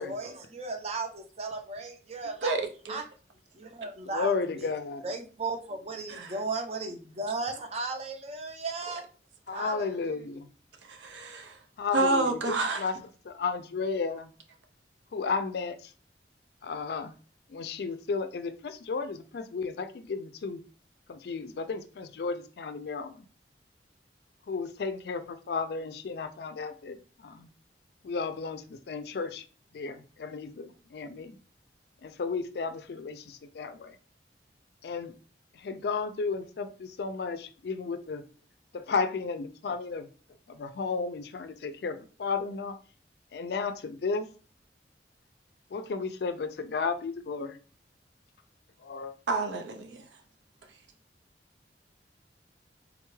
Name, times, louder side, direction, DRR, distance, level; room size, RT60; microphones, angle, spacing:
voice 1, 0.0-2.5 2.9-3.0 3.5-4.7 5.0-9.0 9.5-10.2, right 3 dB, 35° right, 0.5 m, -36 dB
voice 2, 2.4-3.0 6.1-6.3 9.5-9.6 10.8-11.6 11.9-12.8 49.3-50.0, right 2 dB, 90° right, 0.6 m, -29 dB
voice 3, 4.0-5.0 9.5-10.5 11.8-12.9 13.2-14.3 15.1-15.9 16.6-17.1 17.5-20.6 21.1-23.2 24.5-27.5 28.0-29.5 29.7-31.4 32.0-34.0 34.8-35.1 35.5-38.2 38.7-40.1 40.5-42.8 43.3-44.3 45.7-47.6 48.8-49.1, left 4 dB, 65° left, 0.4 m, -33 dB
3.7 x 2.2 x 3.1 m
head